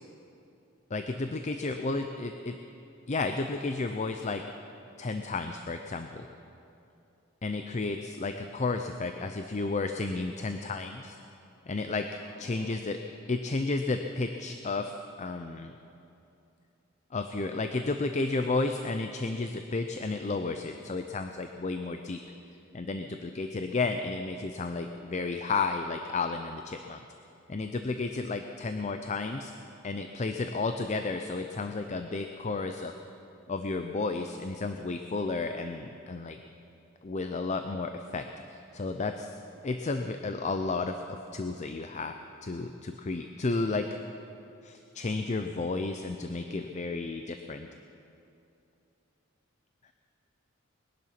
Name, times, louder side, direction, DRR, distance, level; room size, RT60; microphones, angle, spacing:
voice 1, 0.9-2.6 3.1-4.4 5.0-6.3 7.4-11.2 11.7-13.0 13.3-15.7 17.1-22.2 22.7-27.0 27.5-29.5 29.8-32.9 33.5-36.4 37.0-39.3 39.6-42.1 42.4-43.9 44.6-47.7, left 3 dB, 35° left, 7 dB, 0.6 m, -32 dB
voice 2, 12.2-13.3 29.4-29.5, left 1 dB, 55° left, -2 dB, 3.2 m, -54 dB
20.5 x 11.0 x 5.9 m, 2.7 s
head